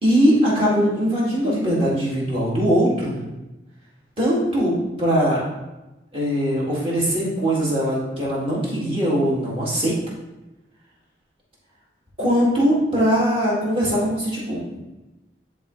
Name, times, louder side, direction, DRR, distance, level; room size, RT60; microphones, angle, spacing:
voice 1, 0.0-3.2 4.2-5.4 6.1-9.9 12.2-14.8, equal, 30° right, -7 dB, 2.2 m, -21 dB
11.0 x 3.7 x 3.2 m, 1.0 s
head